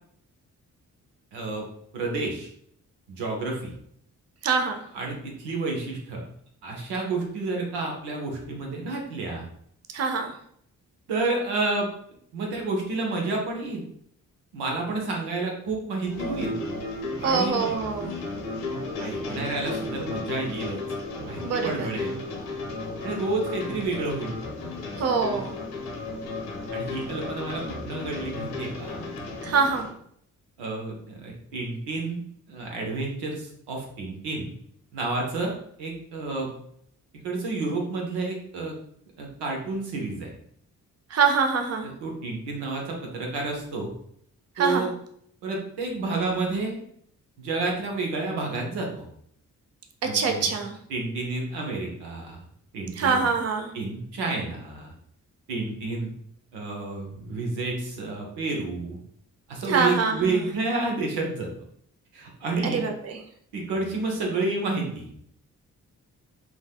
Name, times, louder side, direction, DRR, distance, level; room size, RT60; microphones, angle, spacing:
voice 1, 1.3-1.7 1.9-2.5 3.1-3.7 4.9-6.2 6.6-9.5 11.1-11.9 12.3-13.8 14.5-16.6 17.2-17.6 19.0-20.8 21.2-22.2 23.0-24.4 26.7-29.1 30.6-32.2 32.5-34.5 34.9-35.5 35.8-36.5 37.2-38.7 39.2-40.3 42.0-43.9 44.6-44.9 45.4-46.8 47.4-49.1 50.0-50.5 50.9-52.4 52.7-53.2 53.7-54.9 55.5-56.1 56.5-59.0 59.5-61.5 62.1-62.9 63.5-65.1, right 3 dB, 90° right, 0 dB, 0.7 m, -30 dB
voice 2, 4.4-4.8 9.9-10.3 17.2-18.1 21.4-21.9 25.0-25.5 29.4-29.9 41.1-41.9 44.6-44.9 50.1-50.8 53.0-53.7 59.7-60.4 62.7-63.2, right 5 dB, 40° right, 5 dB, 0.6 m, -24 dB
sound 1, 16.0-29.9, left 2 dB, 90° left, 0.9 m, -34 dB
3.2 x 2.2 x 2.3 m, 0.66 s
supercardioid pair, 40°, 39 cm